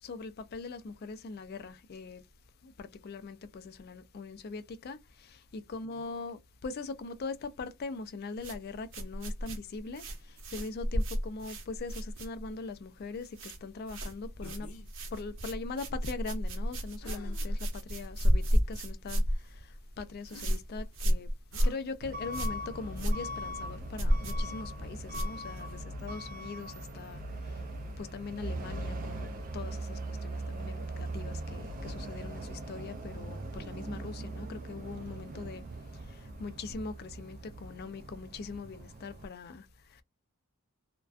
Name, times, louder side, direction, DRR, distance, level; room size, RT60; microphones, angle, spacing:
voice 1, 0.0-2.3 2.6-14.7 15.1-21.3 21.6-27.6 28.0-35.6 35.9-40.0, left 4 dB, 45° left, 0.3 m, -41 dB
sound 1, 8.4-12.7 13.0-13.6 13.9-25.8, equal, 60° right, 0.7 m, -32 dB
sound 2, 14.4-14.9 17.0-17.7 18.3-18.4 20.3-20.5 21.5-21.8, left 2 dB, 80° left, 0.7 m, -50 dB
Truck / Alarm, 22.0-39.2, right 1 dB, 40° right, 0.3 m, -40 dB
2.3 x 2.2 x 2.4 m
head